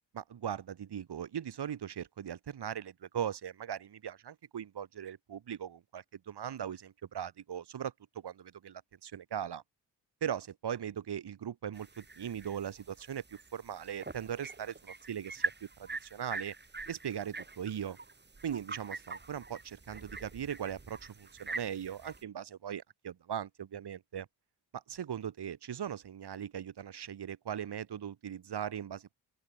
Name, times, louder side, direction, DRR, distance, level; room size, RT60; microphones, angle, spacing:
voice 1, 0.1-7.9 8.2-9.6 10.2-15.4 15.8-16.5 16.9-18.0 18.4-24.3 24.7-29.1, right 9 dB, 60° right, 7.9 m, -39 dB
sound 1, 11.8-22.2, right 3 dB, 25° right, 7.9 m, -44 dB
open air
cardioid pair, 120°, 44 cm